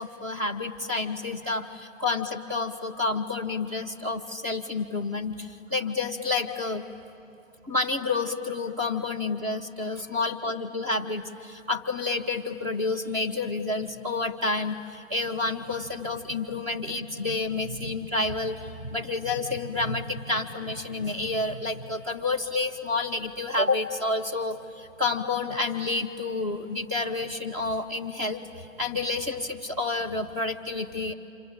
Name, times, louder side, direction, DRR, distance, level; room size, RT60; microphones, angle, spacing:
voice 1, 0.0-6.8 7.6-31.1, left 3 dB, 10° right, 2 dB, 0.7 m, -29 dB
26.5 x 26.0 x 8.6 m, 2.8 s
figure-of-eight pair, 150°, 40 cm